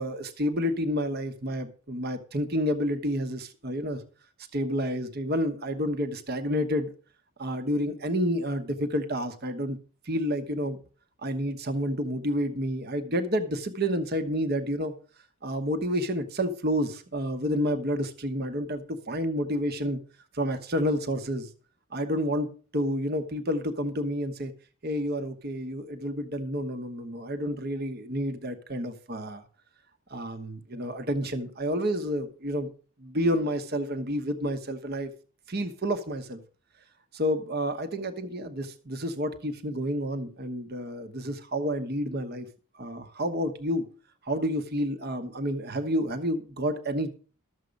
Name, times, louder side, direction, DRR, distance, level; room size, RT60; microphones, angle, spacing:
voice 1, 0.0-4.0 4.5-6.9 7.4-9.8 10.0-10.8 11.2-14.9 15.4-20.0 20.3-21.5 21.9-24.5 24.8-29.4 30.1-32.7 33.0-35.1 35.5-36.4 37.1-42.5 42.7-43.9 44.2-47.1, equal, 45° right, 8 dB, 1.1 m, -29 dB
13.0 x 7.4 x 5.2 m, 0.39 s
head